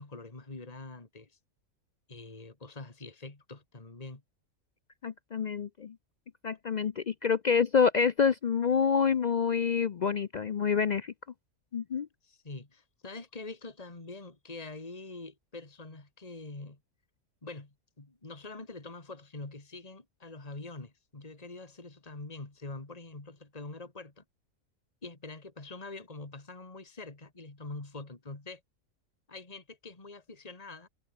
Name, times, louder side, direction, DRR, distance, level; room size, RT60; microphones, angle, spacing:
voice 1, 0.0-1.4 2.1-4.2 12.2-16.8 17.4-24.2 25.0-28.6 29.3-30.9, left 3 dB, 25° left, 2.6 m, -45 dB
voice 2, 5.0-6.0 6.4-11.1 11.7-12.1, left 6 dB, 70° left, 0.4 m, -27 dB
omnidirectional pair, 1.5 m